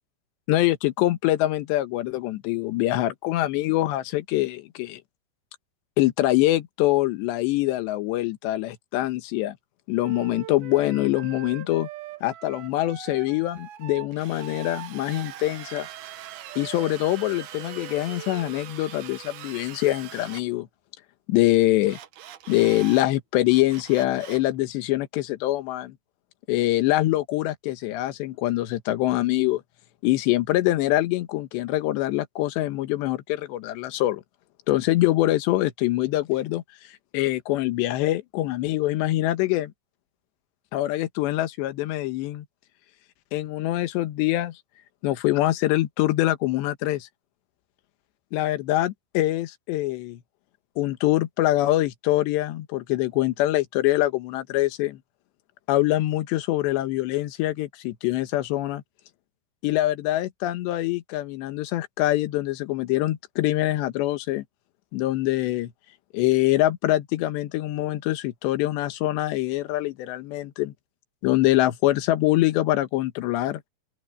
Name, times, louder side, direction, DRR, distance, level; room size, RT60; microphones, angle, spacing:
voice 1, 0.5-5.0 6.0-9.6 9.9-11.9 12.2-15.9 16.6-20.7 21.3-22.0 22.5-26.0 26.5-29.6 30.0-34.2 34.7-36.6 37.1-39.7 40.7-42.5 43.3-44.6 45.0-47.1 48.3-50.2 50.8-55.0 55.7-58.8 59.6-64.4 64.9-65.7 66.1-70.7 71.2-73.6, left 16 dB, 75° left, 3.3 m, -24 dB
Wind instrument woodwind instrument, 10.0-18.5, right 13 dB, 70° right, 2.3 m, -42 dB
Drill, 14.1-20.4 21.8-23.1 23.5-24.5, right 11 dB, 90° right, 1.7 m, -42 dB
open air
omnidirectional pair, 5.4 m